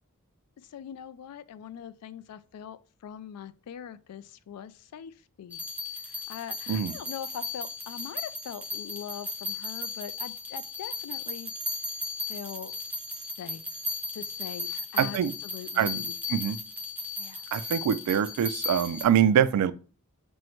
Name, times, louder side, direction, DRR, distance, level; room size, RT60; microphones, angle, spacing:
voice 1, 0.7-5.6 6.0-11.5 12.3-12.7 13.2-13.6 14.1-16.2 17.2-17.4, left 8 dB, 90° left, 0.3 m, -42 dB
sound 1, 5.5-19.0, left 3 dB, 5° right, 0.6 m, -36 dB
voice 2, 15.0-15.3 15.8-16.6 17.5-19.7, right 9 dB, 80° right, 0.3 m, -24 dB
6.1 x 2.1 x 2.9 m
head